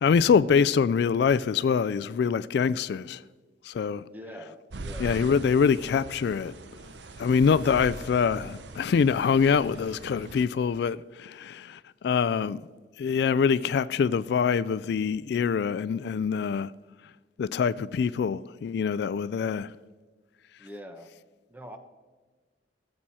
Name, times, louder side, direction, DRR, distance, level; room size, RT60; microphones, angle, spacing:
voice 1, 0.0-3.2 3.6-4.0 5.0-6.5 7.2-12.6 13.0-16.7 17.4-19.7, left 6 dB, 60° left, 0.3 m, -24 dB
voice 2, 4.1-5.2 20.6-21.1 21.5-21.8, equal, 10° right, 0.9 m, -43 dB
sound 1, 4.7-10.5, right 2 dB, 70° right, 0.7 m, -41 dB
18.0 x 7.5 x 4.2 m
head